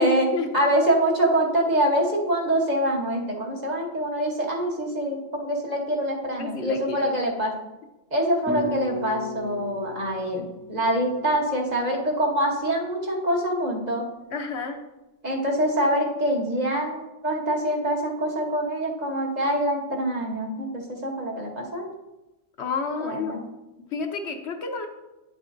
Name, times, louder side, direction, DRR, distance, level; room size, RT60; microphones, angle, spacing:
voice 1, 0.0-7.5 8.1-14.0 15.2-21.9 23.0-23.4, right 1 dB, 40° right, -1 dB, 1.2 m, -25 dB
voice 2, 6.4-7.1 14.3-14.8 22.6-23.4 23.9-24.9, left 5 dB, 70° left, 5 dB, 1.1 m, -30 dB
sound 1, 8.5-12.7, left 1 dB, 15° right, 0.5 m, -36 dB
9.4 x 7.4 x 2.6 m, 1.0 s
omnidirectional pair, 1.2 m